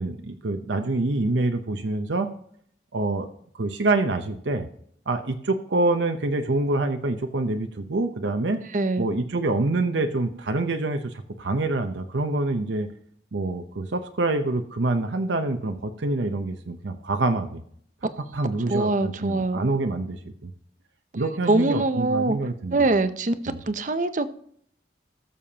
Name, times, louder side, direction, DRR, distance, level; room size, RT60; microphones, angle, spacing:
voice 1, 0.0-2.3 2.9-3.3 3.6-4.7 5.1-8.6 9.0-12.9 13.3-17.6 18.3-20.2 20.4-20.5 21.1-22.8 23.5-23.6, right 2 dB, 80° right, 6 dB, 0.8 m, -26 dB
voice 2, 8.7-9.1 18.7-19.7 21.5-22.4 22.7-23.4 23.7-24.3, right 2 dB, 45° right, 11 dB, 0.7 m, -23 dB
18.0 x 7.1 x 2.9 m, 0.64 s
head